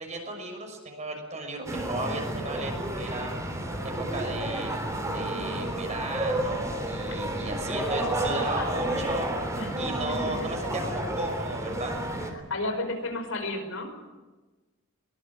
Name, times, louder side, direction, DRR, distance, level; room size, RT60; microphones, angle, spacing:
voice 1, 0.0-2.7 3.0-3.4 3.8-4.7 5.1-12.0, right 2 dB, 35° right, 3 dB, 6.3 m, -35 dB
sound 1, 1.7-12.3, right 1 dB, 15° right, 3.5 m, -31 dB
voice 2, 12.3-13.9, left 2 dB, 80° left, 5 dB, 5.2 m, -32 dB
22.5 x 21.0 x 7.5 m, 1.2 s
head